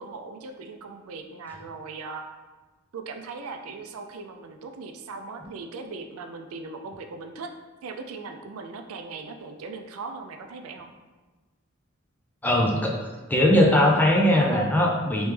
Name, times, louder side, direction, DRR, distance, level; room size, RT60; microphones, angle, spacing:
voice 1, 0.0-2.3 2.9-7.5 7.8-10.9, right 4 dB, 85° right, 6 dB, 0.4 m, -39 dB
voice 2, 12.4-15.3, left 1 dB, 10° left, -1 dB, 0.4 m, -20 dB
3.3 x 3.0 x 3.2 m, 1.2 s
head